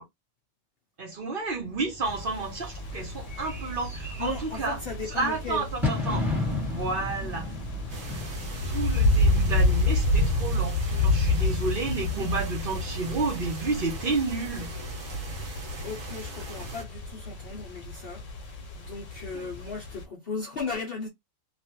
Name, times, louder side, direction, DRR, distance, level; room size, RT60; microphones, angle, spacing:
voice 1, 1.0-4.8 5.1-6.2 6.6-7.5 8.6-14.7 19.3-19.5, right 3 dB, 50° right, 0.9 m, -31 dB
Bird / Fireworks, 1.8-11.0, left 2 dB, ahead, 1.3 m, -35 dB
sound 1, 2.0-20.0, left 2 dB, 75° left, 1.2 m, -29 dB
voice 2, 4.2-5.7 10.9-11.1 12.1-12.3 15.8-21.1, left 5 dB, 55° left, 0.8 m, -37 dB
sound 2, 7.9-16.8, right 1 dB, 90° right, 1.5 m, -40 dB
3.0 x 2.4 x 2.9 m
omnidirectional pair, 1.3 m